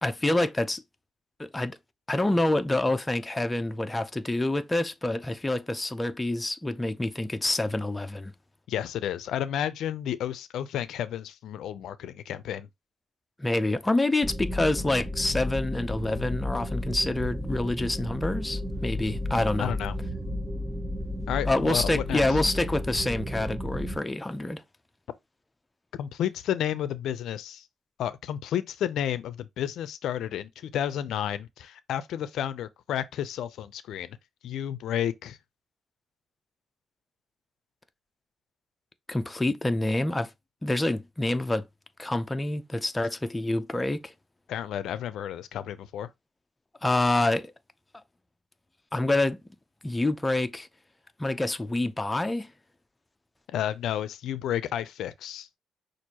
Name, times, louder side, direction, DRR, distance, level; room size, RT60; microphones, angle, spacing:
voice 1, 0.0-0.8 1.4-1.8 2.1-8.3 13.4-19.7 21.5-24.6 39.1-40.3 40.6-41.7 42.0-44.1 46.8-47.5 48.9-49.4 49.8-50.7 51.2-52.5, left 2 dB, 15° left, 0.5 m, -27 dB
voice 2, 8.7-12.7 19.6-19.9 21.3-22.2 26.0-27.6 28.0-34.2 34.4-35.4 44.5-46.1 53.5-55.5, left 10 dB, 80° left, 0.4 m, -31 dB
sound 1, 14.2-24.0, left 1 dB, 5° right, 0.8 m, -33 dB
6.0 x 2.5 x 2.8 m
cardioid pair, 90°, 0 cm